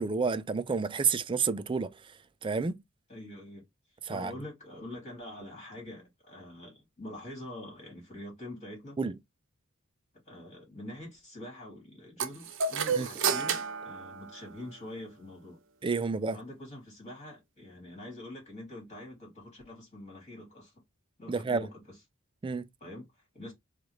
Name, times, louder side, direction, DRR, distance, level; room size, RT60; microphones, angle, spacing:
voice 1, 0.0-1.9 2.4-2.7 4.1-4.3 9.0-9.1 13.0-13.1 15.8-16.4 21.3-21.7 22.4-22.6, right 5 dB, 25° right, 0.4 m, -29 dB
voice 2, 3.1-3.7 4.1-9.0 10.3-15.6 15.9-16.0 16.3-20.8 21.2-22.0 22.8-23.5, left 1 dB, 35° left, 2.6 m, -45 dB
sound 1, 12.2-14.9, right 5 dB, 60° right, 0.7 m, -31 dB
4.6 x 2.5 x 3.1 m
head